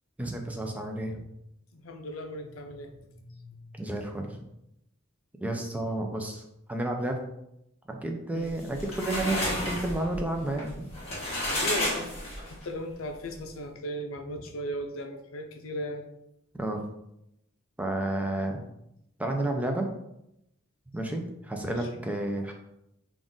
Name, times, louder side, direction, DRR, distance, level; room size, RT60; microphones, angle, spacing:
voice 1, 0.2-1.2 3.8-4.4 5.4-6.4 6.7-7.2 7.9-10.7 16.6-16.8 17.8-18.6 19.2-19.9 20.9-22.5, right 1 dB, 5° right, 2 dB, 0.4 m, -31 dB
voice 2, 1.7-3.7 8.3-8.5 11.5-12.1 12.4-16.0 21.6-22.0, equal, 75° left, 5 dB, 0.5 m, -37 dB
sound 1, 8.5-12.7, left 1 dB, 30° left, 1.4 m, -31 dB
Meow, 8.9-9.9, right 2 dB, 35° right, 1.0 m, -47 dB
3.8 x 2.5 x 3.6 m, 0.82 s
head